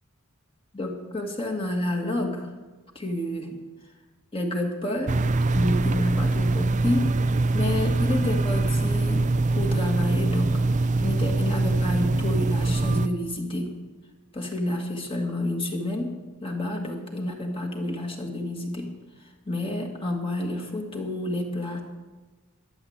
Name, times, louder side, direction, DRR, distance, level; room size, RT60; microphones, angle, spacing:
voice 1, 0.7-2.5 3.0-3.6 4.3-5.2 5.5-7.1 7.5-10.6 11.0-13.7 14.3-18.9 19.5-21.8, left 1 dB, 25° left, 1 dB, 2.0 m, -29 dB
sound 1, 5.1-13.1, right 2 dB, 35° right, 0.5 m, -23 dB
13.0 x 11.0 x 8.1 m, 1.3 s
head